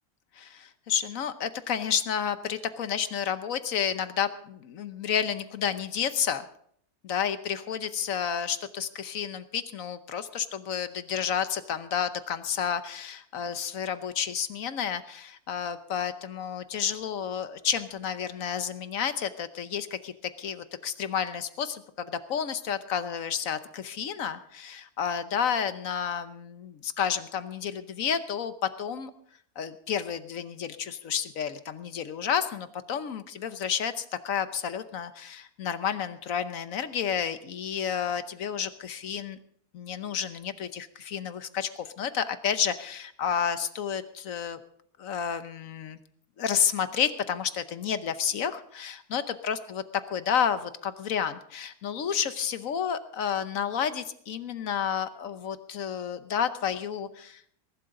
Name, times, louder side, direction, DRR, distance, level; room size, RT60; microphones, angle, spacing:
voice 1, 0.3-6.4 7.0-28.5 28.8-29.1 29.6-39.4 39.7-44.6 45.0-46.0 46.4-49.8 50.1-57.4, left 8 dB, 70° left, 11 dB, 1.2 m, -31 dB
21.0 x 12.0 x 3.8 m, 0.65 s
omnidirectional pair, 1.5 m